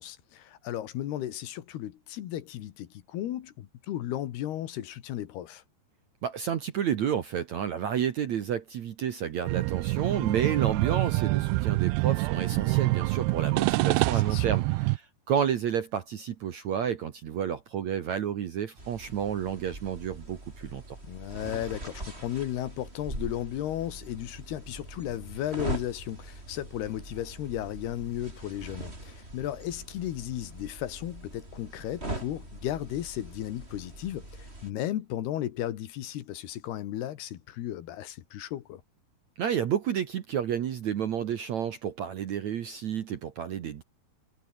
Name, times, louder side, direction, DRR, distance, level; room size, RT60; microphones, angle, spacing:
voice 1, 0.0-5.6 14.1-14.6 21.1-38.8, left 12 dB, 70° left, 3.4 m, -35 dB
voice 2, 6.2-21.0 39.4-43.8, right 9 dB, 60° right, 2.0 m, -30 dB
sound 1, 9.5-15.0, right 21 dB, 80° right, 2.6 m, -26 dB
sound 2, 18.8-34.7, right 2 dB, 15° right, 5.6 m, -42 dB
omnidirectional pair, 4.9 m